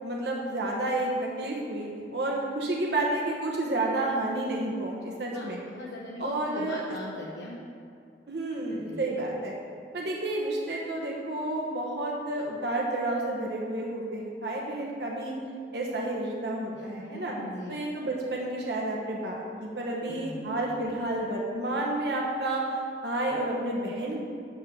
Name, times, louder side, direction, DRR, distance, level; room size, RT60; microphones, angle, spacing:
voice 1, 0.0-5.6 6.2-7.0 8.3-9.5 9.9-15.3 15.7-17.3 17.7-22.6 23.0-24.2, right 2 dB, 75° right, -2 dB, 1.1 m, -30 dB
voice 2, 5.3-7.6 8.6-9.0 16.9-17.7 20.0-20.5, left 1 dB, 85° left, -3 dB, 0.9 m, -40 dB
11.5 x 3.9 x 6.9 m, 2.4 s
head